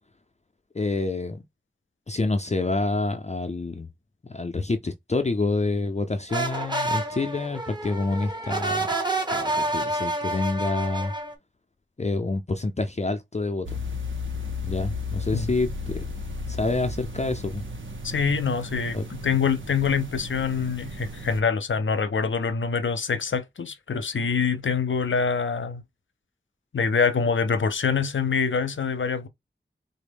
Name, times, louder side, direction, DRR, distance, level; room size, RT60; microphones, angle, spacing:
voice 1, 0.7-1.4 2.1-3.9 4.2-8.9 9.3-11.1 12.0-13.8 14.6-16.0 16.5-17.6 18.9-19.1, left 3 dB, 35° left, 0.5 m, -27 dB
sound 1, 6.3-11.3, right 2 dB, 20° right, 0.9 m, -28 dB
sound 2, 13.7-21.4, left 3 dB, 90° right, 0.7 m, -34 dB
voice 2, 18.0-25.8 26.7-29.3, left 5 dB, 90° left, 0.5 m, -25 dB
3.9 x 2.1 x 3.4 m
wide cardioid pair, 50°, 19 cm